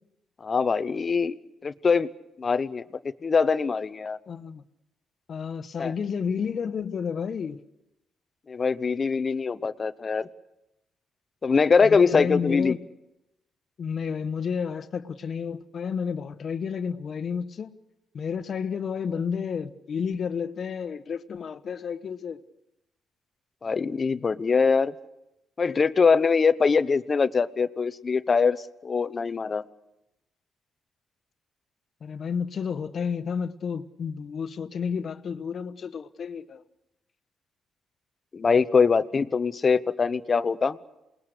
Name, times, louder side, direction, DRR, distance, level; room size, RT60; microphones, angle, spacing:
voice 1, 0.4-1.4 1.6-2.1 2.4-2.8 3.2-4.2 5.8-5.9 8.5-10.3 11.4-12.8 23.6-24.9 25.6-28.6 28.8-29.6 38.3-40.8, left 5 dB, 35° left, 0.9 m, -23 dB
voice 2, 4.3-4.6 5.3-7.6 11.8-12.8 13.8-17.7 18.1-22.4 32.0-36.6, left 6 dB, 50° left, 1.3 m, -31 dB
28.0 x 20.5 x 6.7 m
cardioid pair, 90°, 0 cm